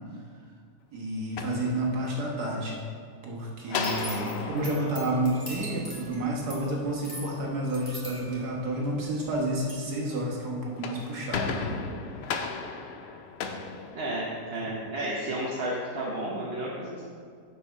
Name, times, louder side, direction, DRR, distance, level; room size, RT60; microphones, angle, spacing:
voice 1, 0.9-2.7 3.2-11.8 12.1-12.2 14.6-14.7, right 1 dB, 75° right, -2 dB, 1.9 m, -30 dB
sound 1, 1.2-2.4 3.7-6.2 10.6-14.7, left 5 dB, 70° left, 0.6 m, -35 dB
sound 2, 3.7-9.3 9.7-9.8, equal, 15° right, 1.8 m, -42 dB
voice 2, 13.9-17.0, right 1 dB, 45° right, -5 dB, 1.0 m, -32 dB
6.8 x 5.1 x 5.6 m, 2.2 s
omnidirectional pair, 1.7 m